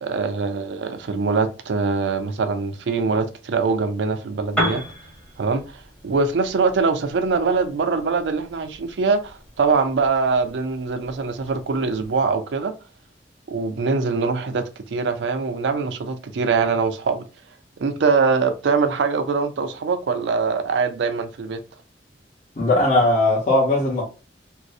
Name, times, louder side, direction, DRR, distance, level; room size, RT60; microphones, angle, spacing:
voice 1, 0.0-4.8 5.4-12.7 13.5-17.2 17.8-21.6, right 4 dB, 75° right, 0.4 m, -23 dB
Piano, 4.4-12.2, equal, 10° left, 0.8 m, -35 dB
voice 2, 22.6-24.0, left 1 dB, 40° left, 0.8 m, -18 dB
2.6 x 2.0 x 2.4 m
head